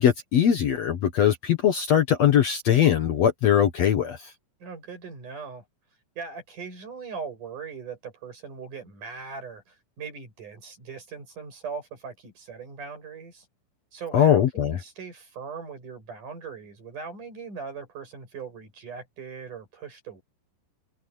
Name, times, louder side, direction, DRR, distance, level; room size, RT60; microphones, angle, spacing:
voice 1, 0.0-4.2 14.1-14.8, left 9 dB, 75° left, 1.5 m, -21 dB
voice 2, 4.6-5.6 6.2-13.5 13.9-20.2, right 5 dB, 45° right, 8.7 m, -40 dB
omnidirectional pair, 5.0 m